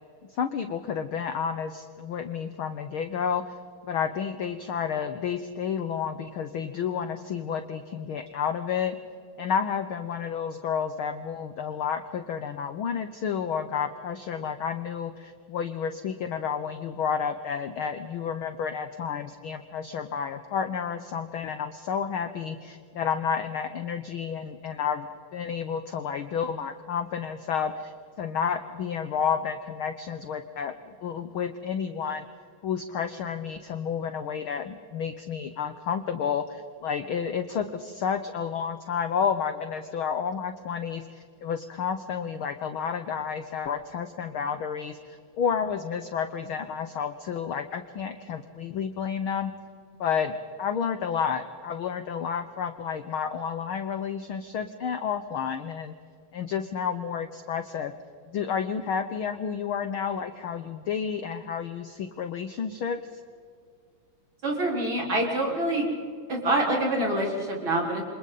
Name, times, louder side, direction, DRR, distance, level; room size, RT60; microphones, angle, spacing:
voice 1, 0.4-3.5 3.9-9.0 9.4-25.1 25.3-27.9 28.2-30.8 31.0-32.3 32.6-49.5 50.0-55.9 56.3-57.9 58.3-63.2, left 7 dB, 70° left, 9 dB, 1.2 m, -30 dB
voice 2, 64.4-65.9 66.3-68.0, right 1 dB, 40° right, -2 dB, 5.1 m, -26 dB
28.5 x 26.0 x 4.1 m, 2.1 s
omnidirectional pair, 3.5 m